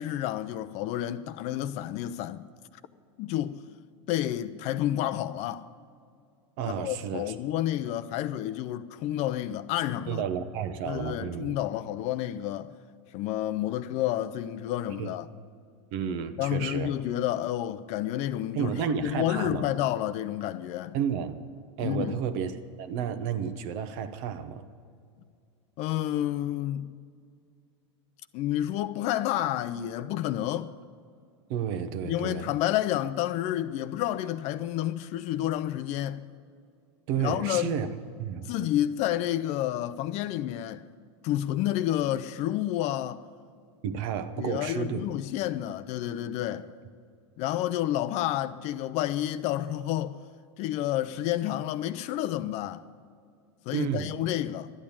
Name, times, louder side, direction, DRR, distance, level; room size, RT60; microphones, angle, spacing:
voice 1, 0.0-2.5 3.2-3.6 4.1-5.7 6.6-10.2 10.9-12.7 13.1-15.3 16.4-18.7 19.0-21.0 21.8-22.2 25.8-26.9 28.3-30.7 32.1-36.2 37.2-37.8 38.4-40.8 41.2-43.2 44.4-46.7 47.4-50.2 50.6-52.9 53.7-54.7, left 13 dB, 50° left, 0.6 m, -30 dB
voice 2, 6.6-7.3 10.1-11.6 14.9-15.2 15.9-17.0 18.5-19.7 20.9-21.4 21.8-24.7 31.5-32.5 37.1-37.9 38.2-38.5 43.8-45.0 53.7-54.1, right 8 dB, 55° right, 1.0 m, -31 dB
12.0 x 8.9 x 8.7 m
hypercardioid pair, 100°, 15 cm